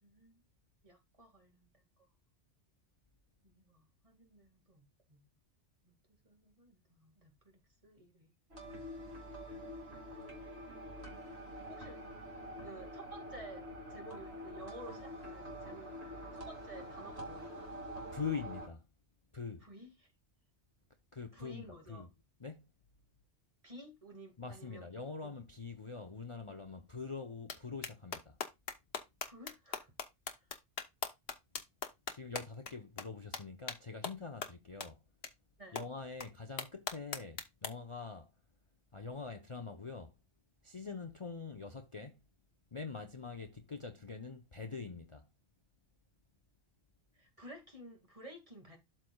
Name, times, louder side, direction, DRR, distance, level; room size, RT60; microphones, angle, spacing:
voice 1, 0.0-0.4 0.8-2.1 3.4-5.2 5.9-8.3 11.7-12.0 12.6-17.7 19.6-20.1 21.3-22.1 23.6-24.9 25.2-25.4 29.2-29.9 30.4-30.5 35.6-35.8 47.2-48.8, right 1 dB, 30° right, 2.0 m, -54 dB
sound 1, 8.5-18.7, equal, 65° right, 2.4 m, -46 dB
voice 2, 18.1-18.8 19.3-19.7 21.1-22.1 22.4-22.6 24.4-28.4 32.1-35.0 35.7-38.3 38.9-40.1 40.6-42.2 42.7-45.3, left 4 dB, 30° left, 0.7 m, -44 dB
sound 2, 27.5-27.6 27.8-32.7 33.0-33.1 33.3-33.4 33.7-33.8 34.0-34.1 34.4-34.5 34.8-34.9 35.2-35.3 35.8-35.9 36.2-36.3 36.6-37.7, left 5 dB, 60° left, 1.3 m, -39 dB
12.5 x 4.4 x 2.2 m
omnidirectional pair, 1.2 m